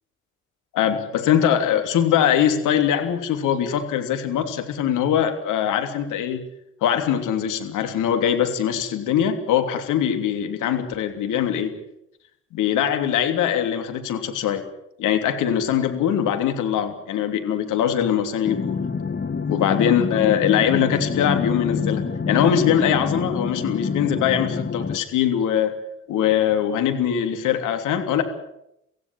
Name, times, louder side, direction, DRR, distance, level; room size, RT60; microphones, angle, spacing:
voice 1, 0.7-6.4 6.8-11.7 12.5-14.6 15.0-18.8 19.5-25.8 26.1-28.2, left 9 dB, 75° left, 7 dB, 3.2 m, -22 dB
sound 1, 18.4-25.0, left 5 dB, 35° left, 2.1 m, -26 dB
25.0 x 16.0 x 8.9 m, 0.81 s
hypercardioid pair, 55°, 31 cm